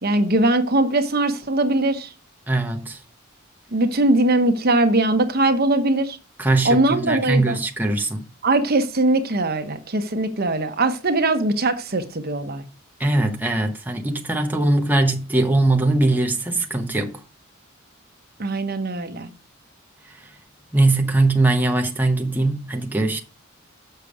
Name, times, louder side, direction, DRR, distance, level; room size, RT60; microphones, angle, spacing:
voice 1, 0.0-2.1 3.7-6.2 6.6-7.6 8.4-12.6 18.4-19.3, right 2 dB, 50° right, 1.0 m, -21 dB
voice 2, 2.5-3.0 6.4-8.3 13.0-17.2 20.7-23.2, right 2 dB, 10° right, 0.9 m, -21 dB
7.0 x 6.7 x 4.9 m
head